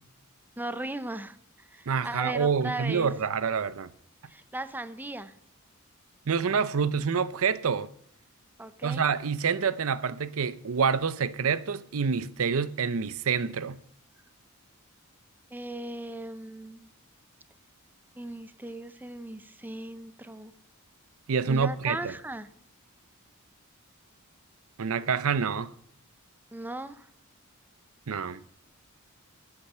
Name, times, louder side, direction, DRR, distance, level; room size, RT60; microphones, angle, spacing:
voice 1, 0.6-3.1 4.3-5.3 8.6-9.1 15.5-16.9 18.1-20.5 21.5-22.5 26.5-27.1, right 2 dB, 10° right, 0.6 m, -37 dB
voice 2, 1.9-3.9 6.3-7.9 8.8-13.8 21.3-22.1 24.8-25.7 28.1-28.4, right 6 dB, 70° right, 0.6 m, -27 dB
14.0 x 8.6 x 5.6 m
head